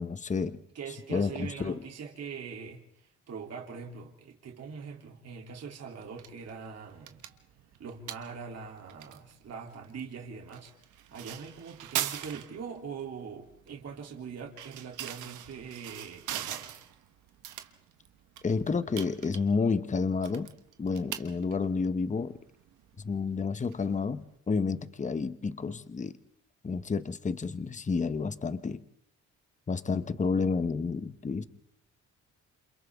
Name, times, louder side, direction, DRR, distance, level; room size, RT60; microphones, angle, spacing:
voice 1, 0.0-0.6 1.1-1.8 18.4-20.5 20.8-22.4 23.0-26.2 26.6-28.8 29.7-31.4, left 4 dB, 25° left, 13 dB, 1.0 m, -30 dB
voice 2, 0.7-7.2 7.8-16.7, right 6 dB, 55° right, 0 dB, 3.1 m, -42 dB
sound 1, 6.0-24.4, right 11 dB, 90° right, 1.4 m, -43 dB
29.0 x 27.5 x 3.6 m, 0.70 s
cardioid pair, 90°, 30 cm